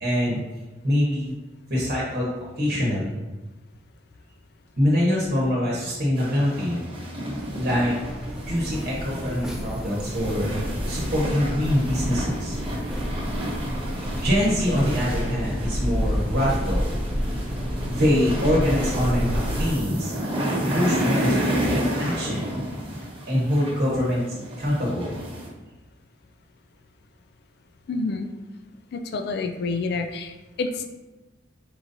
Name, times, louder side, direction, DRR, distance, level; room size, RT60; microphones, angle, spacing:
voice 1, 0.0-0.4 0.8-1.3 1.7-2.3 2.6-3.2 4.8-6.8 7.6-7.9 8.5-10.5 10.9-12.6 14.0-16.9 17.9-20.2 20.7-22.4 23.3-24.2 24.6-25.2, equal, 50° right, -5 dB, 1.0 m, -24 dB
sound 1, 6.2-25.5, equal, 30° right, 0.8 m, -31 dB
sound 2, 7.4-19.7, equal, 5° right, 0.5 m, -29 dB
voice 2, 27.9-28.3 28.9-30.9, left 3 dB, 55° left, 6 dB, 0.4 m, -28 dB
4.5 x 3.9 x 2.6 m, 1.1 s
head